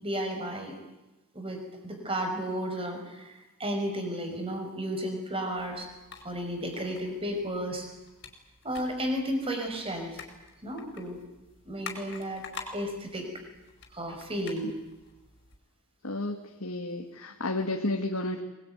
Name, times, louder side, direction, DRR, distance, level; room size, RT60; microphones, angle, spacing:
voice 1, 0.0-0.8 1.3-5.9 6.2-7.9 8.6-10.2 10.6-11.2 11.7-12.4 12.7-13.3 13.9-14.7, equal, 25° right, 4 dB, 5.3 m, -33 dB
sound 1, 5.6-15.6, left 4 dB, 50° left, 5.3 m, -48 dB
voice 2, 16.0-18.4, left 2 dB, 80° left, 2 dB, 2.1 m, -32 dB
24.0 x 21.0 x 9.5 m, 1.1 s
head